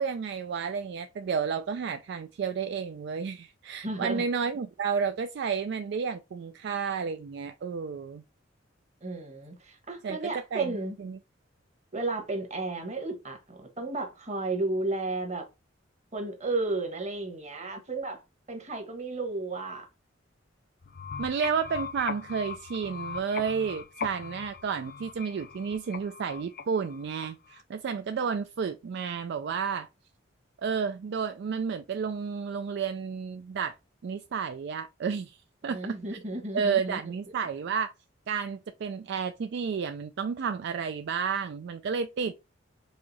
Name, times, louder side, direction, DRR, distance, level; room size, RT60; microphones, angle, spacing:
voice 1, 0.0-8.2 10.0-10.2 10.5-11.2 21.2-29.9 30.6-33.8 34.0-35.4 35.6-35.8 36.5-37.9 38.3-42.3, right 6 dB, 60° right, 0.3 m, -31 dB
voice 2, 3.8-4.2 9.0-11.0 11.9-15.4 16.1-18.2 18.5-19.9 35.6-37.0, right 2 dB, 35° right, 1.3 m, -33 dB
sound 1, 20.8-27.6, left 6 dB, 50° left, 0.4 m, -40 dB
4.8 x 2.7 x 4.0 m
head